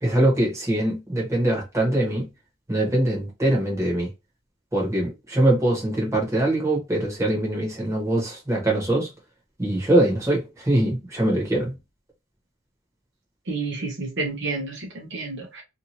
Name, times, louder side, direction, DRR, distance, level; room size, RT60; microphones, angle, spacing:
voice 1, 0.0-2.3 2.7-4.1 4.7-9.1 9.6-11.7, right 1 dB, 15° right, 1.2 m, -22 dB
voice 2, 13.5-15.6, right 3 dB, 65° right, 0.9 m, -30 dB
2.7 x 2.6 x 2.8 m
head